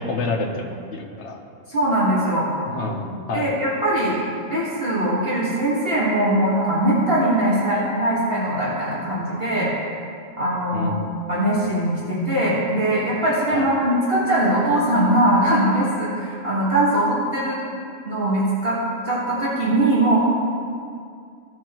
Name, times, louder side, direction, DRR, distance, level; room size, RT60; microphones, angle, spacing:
voice 1, 0.0-1.4 2.7-3.5 10.7-11.1 13.5-13.7, left 3 dB, 60° left, 1 dB, 1.3 m, -28 dB
voice 2, 1.7-2.5 3.3-4.2 4.5-9.7 10.4-10.9 11.3-17.6 18.1-18.8 19.1-20.2, right 1 dB, 45° right, -8 dB, 1.8 m, -21 dB
16.0 x 6.3 x 3.0 m, 2.4 s
omnidirectional pair, 1.4 m